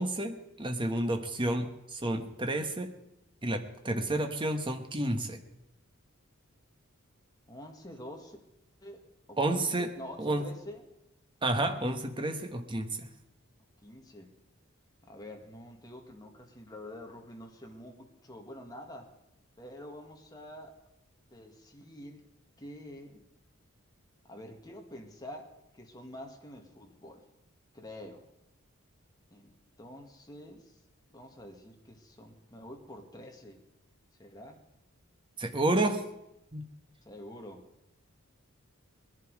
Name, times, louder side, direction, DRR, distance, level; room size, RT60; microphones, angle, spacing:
voice 1, 0.0-2.9 3.4-5.4 9.4-9.9 10.2-10.4 11.4-13.1 35.4-36.0 36.5-36.7, right 1 dB, 25° right, 5 dB, 1.3 m, -30 dB
voice 2, 7.5-8.4 8.8-9.0 9.3-10.9 13.8-14.4 15.0-19.1 19.6-20.7 21.3-22.2 22.6-23.2 24.3-27.2 27.7-28.3 29.3-30.8 31.1-33.6 34.2-34.6 37.0-37.7, left 1 dB, 20° left, 2 dB, 2.0 m, -47 dB
20.5 x 10.5 x 4.9 m, 0.86 s
head